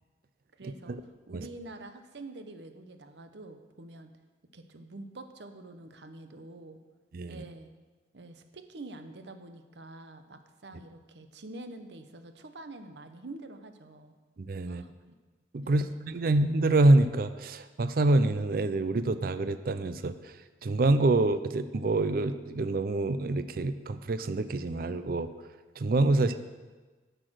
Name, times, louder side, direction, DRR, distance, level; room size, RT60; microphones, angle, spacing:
voice 1, 0.5-4.1 4.5-6.8 7.3-7.7 8.1-14.1 14.7-15.1 15.6-16.0 26.2-26.4, right 2 dB, 75° right, 8 dB, 0.9 m, -46 dB
voice 2, 14.4-14.8 15.5-20.3 20.6-25.3 25.8-26.4, right 2 dB, 55° right, 12 dB, 0.5 m, -26 dB
9.9 x 6.8 x 6.2 m, 1.3 s
head